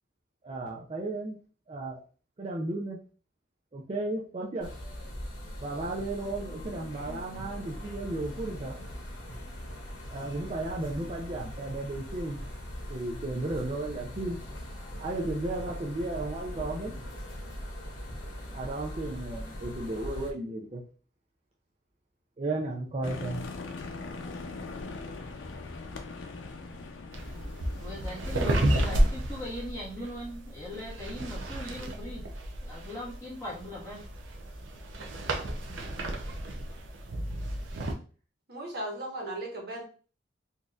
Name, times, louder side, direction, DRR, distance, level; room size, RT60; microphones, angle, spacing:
voice 1, 0.4-1.4 1.7-2.0 2.4-3.0 3.7-4.7 5.6-8.8 10.1-12.4 12.9-14.4 15.0-16.9 18.5-20.8 22.4-23.4, right 2 dB, 35° right, -2 dB, 0.5 m, -34 dB
sound 1, 4.6-20.3, equal, 65° left, 1.4 m, -41 dB
sound 2, 23.0-29.1, left 3 dB, 90° left, 0.6 m, -41 dB
sound 3, 27.1-37.9, right 1 dB, 85° right, 0.6 m, -32 dB
voice 2, 27.4-32.2 32.6-34.0 35.7-36.2, left 1 dB, 20° left, -7 dB, 1.5 m, -40 dB
voice 3, 38.5-39.8, right 1 dB, 55° right, -1 dB, 1.2 m, -36 dB
4.1 x 2.6 x 2.4 m, 0.39 s
head